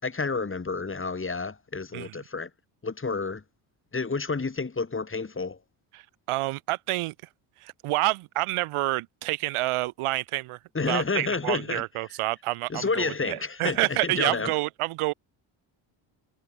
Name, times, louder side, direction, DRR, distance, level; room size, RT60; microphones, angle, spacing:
voice 1, 0.0-2.5 2.8-3.4 3.9-5.6 10.7-11.8 12.7-14.5, left 4 dB, 25° left, 6.5 m, -30 dB
voice 2, 6.3-7.1 7.6-10.6 10.9-15.1, right 19 dB, 85° right, 4.7 m, -28 dB
cardioid pair, 90°, 49 cm